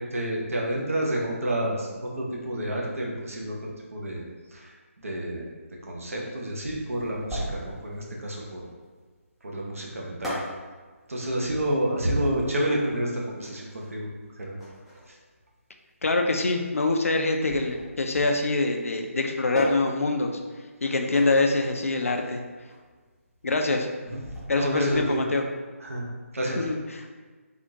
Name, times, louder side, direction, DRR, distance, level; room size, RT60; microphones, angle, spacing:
voice 1, 0.0-3.6 3.9-4.2 4.5-5.5 5.9-8.6 9.4-10.4 11.1-14.1 14.4-14.6 15.1-15.2 24.0-24.2 24.5-25.2 25.8-26.1 26.3-26.6, right 1 dB, 65° right, -2 dB, 0.8 m, -29 dB
sound 1, 6.9-25.2, equal, ahead, 0.4 m, -40 dB
voice 2, 16.0-20.4 20.8-22.4 23.4-23.9 24.5-25.4 26.6-26.8, left 3 dB, 65° left, 4 dB, 0.4 m, -24 dB
3.5 x 2.4 x 2.7 m, 1.4 s
figure-of-eight pair, 150°, 8 cm